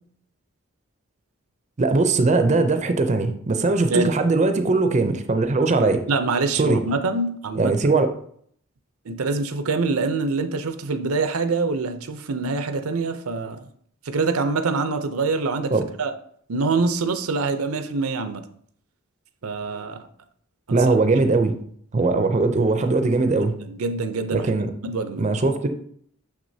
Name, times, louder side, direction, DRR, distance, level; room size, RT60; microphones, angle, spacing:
voice 1, 1.8-6.0 6.5-6.8 7.6-8.1 15.7-15.8 20.7-21.5 21.9-23.5 24.3-24.7 25.2-25.7, right 3 dB, 35° right, 0.5 m, -20 dB
voice 2, 6.1-7.7 9.1-13.7 14.0-15.7 16.0-16.1 16.5-18.4 19.4-20.1 20.7-20.9 23.5-24.5 24.8-25.3, right 3 dB, 85° right, 0.6 m, -25 dB
6.4 x 6.1 x 2.7 m
head